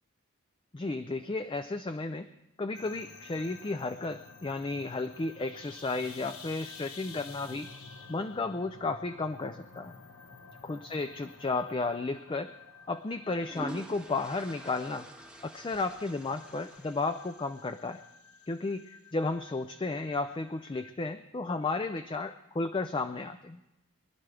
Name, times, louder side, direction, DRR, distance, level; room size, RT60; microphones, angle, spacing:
voice 1, 0.7-2.3 2.6-7.7 8.1-10.0 10.6-12.5 12.9-15.1 15.4-18.0 18.5-23.6, left 3 dB, 25° left, 9 dB, 0.4 m, -33 dB
sound 1, 2.7-20.9, left 4 dB, 80° left, 1.3 m, -51 dB
sound 2, 11.8-12.0 13.1-17.7, right 2 dB, 5° right, 0.7 m, -47 dB
23.0 x 11.0 x 3.4 m, 0.95 s
head